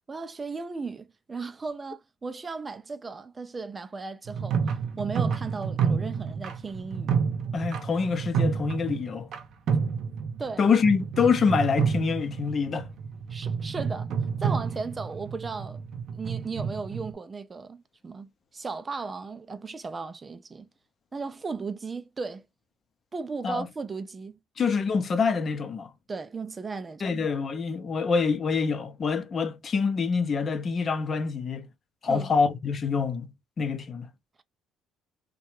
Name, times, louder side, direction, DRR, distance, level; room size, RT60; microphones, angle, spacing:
voice 1, 0.0-7.2 10.4-10.6 13.3-14.1 14.4-15.8 16.1-20.7 21.1-22.4 23.1-24.4 26.1-27.2 32.1-32.3, right 4 dB, 30° right, 0.4 m, -36 dB
sound 1, 4.3-9.4 9.7-10.5 10.8-17.1, right 6 dB, 65° right, 0.7 m, -29 dB
voice 2, 7.5-9.3 10.6-12.9 23.4-23.7 24.6-25.9 27.0-31.7 32.0-33.3 33.6-34.1, left 5 dB, 45° left, 0.6 m, -26 dB
2.8 x 2.2 x 3.0 m
supercardioid pair, 80°, 0 cm